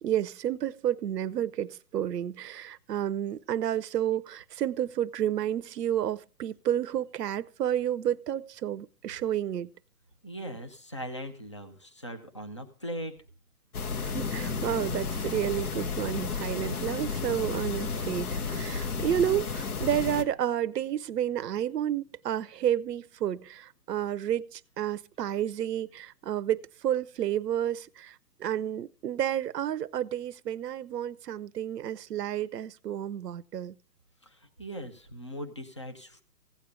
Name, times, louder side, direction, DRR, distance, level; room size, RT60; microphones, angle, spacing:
voice 1, 0.0-9.7 14.0-33.7, right 10 dB, 75° right, 0.7 m, -31 dB
voice 2, 10.2-13.2 25.2-25.4 34.2-36.2, equal, 20° left, 0.5 m, -40 dB
sound 1, 13.7-20.2, left 5 dB, 65° left, 1.5 m, -33 dB
sound 2, 14.1-20.7, left 4 dB, 90° left, 1.8 m, -44 dB
16.0 x 8.3 x 5.0 m
hypercardioid pair, 160°, 48 cm